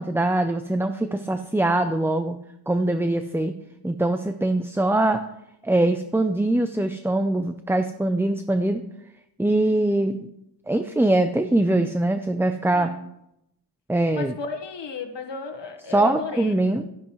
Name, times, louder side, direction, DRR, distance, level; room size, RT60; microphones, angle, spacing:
voice 1, 0.0-2.4 2.7-3.5 3.8-5.2 5.6-8.8 9.4-10.3 10.7-12.9 13.9-14.4 15.9-16.8, right 1 dB, 5° right, 8 dB, 0.5 m, -22 dB
voice 2, 14.1-16.9, left 4 dB, 80° left, 5 dB, 1.4 m, -34 dB
13.0 x 10.5 x 3.1 m, 0.83 s
wide cardioid pair, 90°, 43 cm